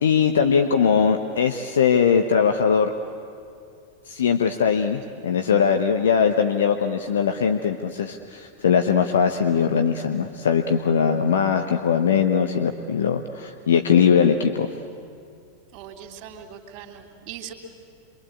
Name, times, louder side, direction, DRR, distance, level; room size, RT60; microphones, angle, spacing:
voice 1, 0.0-2.9 4.1-14.7, left 7 dB, 65° left, 6 dB, 1.0 m, -20 dB
voice 2, 15.7-17.5, right 9 dB, 45° right, 4 dB, 3.1 m, -40 dB
27.0 x 23.5 x 8.5 m, 2.4 s
figure-of-eight pair, 90°, 0 cm